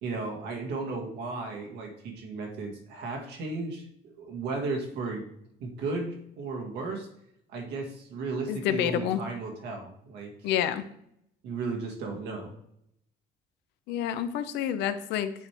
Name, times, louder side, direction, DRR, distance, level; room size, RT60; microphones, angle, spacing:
voice 1, 0.0-5.3 5.6-7.1 7.5-10.3 11.4-12.5, right 3 dB, 85° right, 1 dB, 1.8 m, -35 dB
voice 2, 8.5-9.2 10.4-10.8 13.9-15.3, left 10 dB, 90° left, 11 dB, 0.6 m, -28 dB
8.2 x 4.4 x 3.4 m, 0.74 s
cardioid pair, 110°, 17 cm